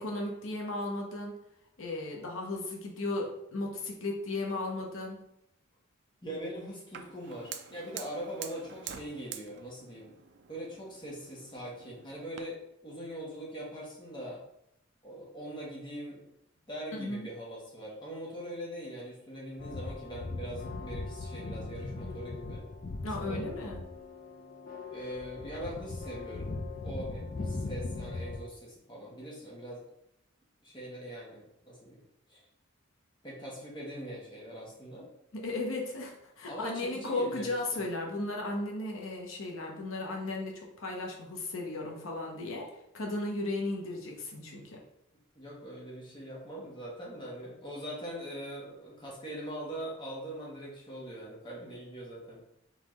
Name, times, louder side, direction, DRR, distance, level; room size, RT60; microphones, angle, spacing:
voice 1, 0.0-1.3 1.8-5.2 16.9-17.3 23.0-23.8 35.3-42.7 42.9-44.8, left 2 dB, 85° left, 0 dB, 0.9 m, -35 dB
voice 2, 6.2-10.1 10.5-14.4 15.0-16.2 16.7-22.6 23.2-23.7 24.9-26.5 26.8-29.8 30.6-32.0 32.3-32.4 33.2-35.1 36.5-37.8 45.3-52.4, right 1 dB, 25° left, -4 dB, 1.2 m, -42 dB
Fire, 6.9-12.4, right 9 dB, 60° right, 0.4 m, -47 dB
sound 1, 19.6-28.5, left 3 dB, 45° left, 0.4 m, -39 dB
4.0 x 3.9 x 3.1 m, 0.78 s
head